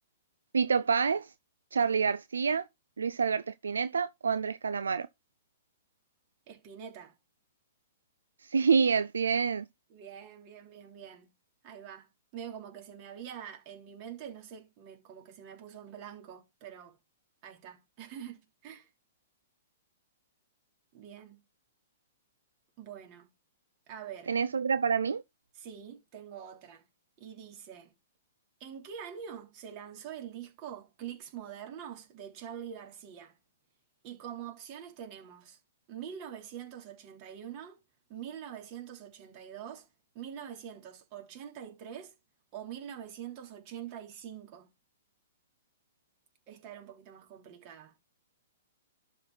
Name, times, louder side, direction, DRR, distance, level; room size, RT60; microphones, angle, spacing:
voice 1, 0.5-1.3 1.7-2.7 3.0-5.1 8.4-9.7 24.3-25.2, right 5 dB, 80° right, 0.4 m, -27 dB
voice 2, 6.5-7.1 9.9-11.3 11.6-17.0 17.4-18.9 20.9-21.4 22.8-23.3 23.9-24.3 25.5-26.8 27.2-27.9 28.6-33.4 34.0-35.6 35.9-37.8 38.1-39.9 40.1-42.1 42.5-44.7 46.5-47.9, right 9 dB, 40° right, 3.3 m, -45 dB
12.0 x 4.4 x 3.9 m
hypercardioid pair, 120°, 0 cm